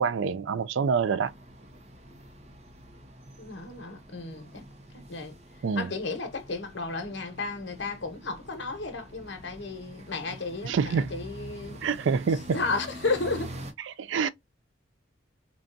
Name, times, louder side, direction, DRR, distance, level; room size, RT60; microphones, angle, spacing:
voice 1, 0.0-1.3 5.6-5.9 10.6-11.1 11.8-12.6 13.9-14.3, right 5 dB, 70° right, 0.4 m, -26 dB
sound 1, 1.2-13.7, right 1 dB, 35° right, 0.6 m, -46 dB
voice 2, 3.4-4.7 4.9-5.4 5.7-11.8 12.5-13.5, left 3 dB, 65° left, 0.9 m, -33 dB
3.8 x 2.3 x 2.4 m
head